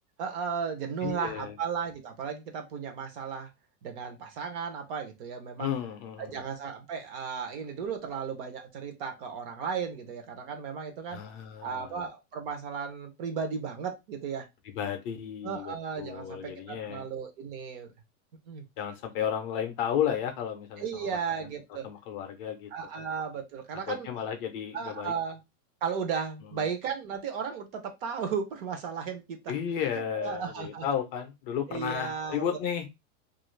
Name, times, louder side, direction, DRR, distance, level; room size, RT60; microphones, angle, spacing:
voice 1, 0.2-3.5 3.8-5.8 6.2-11.2 11.6-14.5 15.4-17.9 18.5-18.6 20.8-21.9 22.7-24.1 24.7-25.4 25.8-29.5 29.9-30.9 31.7-32.6, right 6 dB, 40° right, 5 dB, 0.6 m, -35 dB
voice 2, 1.0-1.5 5.6-6.4 11.1-11.9 14.8-17.1 18.8-21.1 21.8-22.7 23.9-25.1 29.5-32.9, left 9 dB, 40° left, 6 dB, 0.5 m, -33 dB
2.4 x 2.3 x 3.1 m, 0.22 s
supercardioid pair, 165°, 42 cm